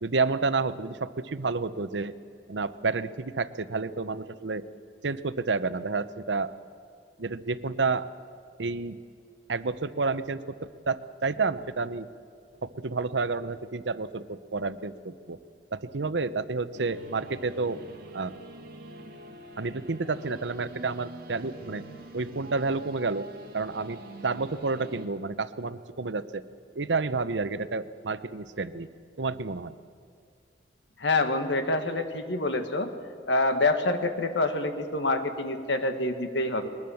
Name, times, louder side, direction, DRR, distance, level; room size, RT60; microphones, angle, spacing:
voice 1, 0.0-2.1 2.5-4.6 5.0-6.5 7.2-8.1 8.6-9.0 9.5-12.1 12.6-15.4 15.7-17.8 18.1-18.4 19.6-21.8 22.1-26.4 26.8-28.9 29.2-29.7, right 4 dB, 85° right, 14 dB, 0.8 m, -30 dB
sound 1, 16.7-25.1, right 1 dB, 55° right, 2.2 m, -45 dB
voice 2, 31.0-32.9 33.3-36.7, left 2 dB, 80° left, 8 dB, 1.7 m, -26 dB
21.5 x 20.0 x 7.1 m, 2.3 s
head